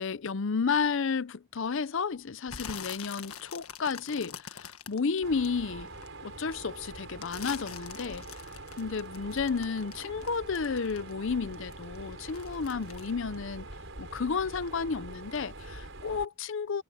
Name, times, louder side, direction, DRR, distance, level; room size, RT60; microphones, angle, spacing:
voice 1, 0.0-5.9 6.2-8.2 8.8-13.7 14.0-16.8, left 5 dB, 60° left, 0.6 m, -32 dB
sound 1, 2.5-6.1 6.5-11.3 11.5-14.2 14.5-14.9 15.3-15.4, left 8 dB, 80° left, 1.6 m, -44 dB
Mechanisms, 5.2-16.2, right 2 dB, 60° right, 7.3 m, -44 dB
head